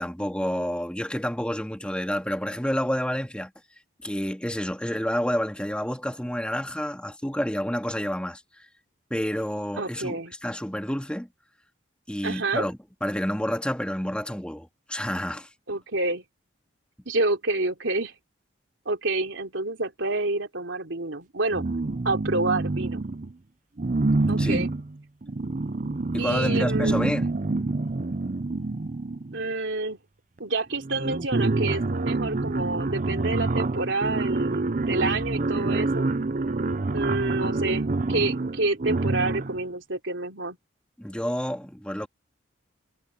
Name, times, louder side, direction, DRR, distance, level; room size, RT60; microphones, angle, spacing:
voice 1, 0.0-3.5 4.0-8.7 9.1-11.3 12.1-15.5 24.4-24.7 26.1-27.3 27.6-27.7 41.0-42.1, equal, 5° left, 2.0 m, -29 dB
voice 2, 9.8-10.3 12.2-12.7 15.7-16.2 17.0-18.1 18.8-21.7 22.0-23.0 24.3-24.7 26.2-27.0 29.3-30.0 30.4-36.1 36.9-40.6, right 2 dB, 75° right, 3.2 m, -28 dB
sound 1, 21.5-23.3 23.8-29.5 30.4-30.5 30.8-39.6, right 3 dB, 40° right, 0.6 m, -27 dB
head